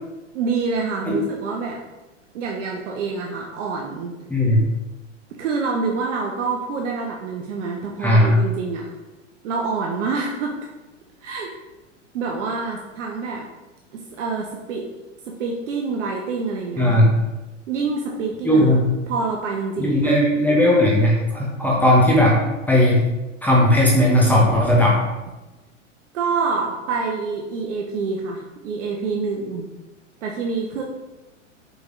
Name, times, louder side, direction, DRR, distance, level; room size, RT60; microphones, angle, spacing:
voice 1, 0.3-1.8 2.3-4.2 5.4-8.9 9.4-10.6 11.2-11.5 12.1-13.5 13.9-14.9 15.3-17.1 17.7-18.8 19.1-20.2 26.1-29.7 30.2-30.8, right 4 dB, 70° right, 0 dB, 0.7 m, -27 dB
voice 2, 4.3-4.6 8.0-8.4 16.8-17.1 18.4-18.9 19.8-22.4 22.7-23.0 23.4-25.0, left 1 dB, 5° left, -4 dB, 0.5 m, -16 dB
5.0 x 3.1 x 2.5 m, 1.1 s
hypercardioid pair, 115°, 38 cm